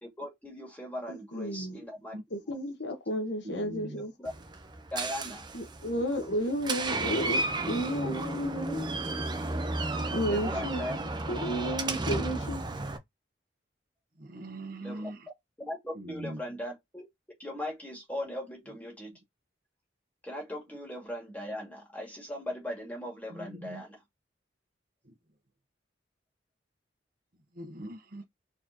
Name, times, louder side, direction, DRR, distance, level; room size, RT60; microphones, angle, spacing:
voice 1, 0.0-2.1 3.8-4.3 4.9-5.5 10.2-11.0 14.8-15.0 15.6-17.1 17.4-19.1 20.2-24.0, left 1 dB, 10° left, 2.1 m, -39 dB
voice 2, 1.1-1.8 2.3-4.1 5.5-8.9 10.1-12.6, equal, 70° left, 1.3 m, -32 dB
voice 3, 3.4-4.0 10.1-10.7 12.4-12.5 14.2-15.3 15.9-16.4 23.3-23.8 25.0-25.1 27.5-28.2, right 1 dB, 50° right, 1.1 m, -42 dB
Door, 4.3-13.0, right 2 dB, 25° right, 0.7 m, -33 dB
4.3 x 4.2 x 2.9 m
head